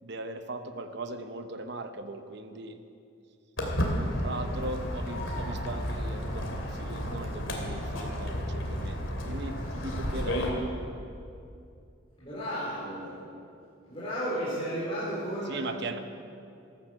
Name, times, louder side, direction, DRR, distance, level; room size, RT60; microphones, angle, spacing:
voice 1, 0.0-2.8 4.2-10.5 15.4-16.0, right 2 dB, 55° right, 8 dB, 1.0 m, -39 dB
Walk footsteps, 3.6-10.5, equal, 70° left, 2.8 m, -32 dB
voice 2, 12.2-13.2 13.9-15.6, equal, 25° left, -10 dB, 4.2 m, -33 dB
14.0 x 12.0 x 7.6 m, 2.5 s
head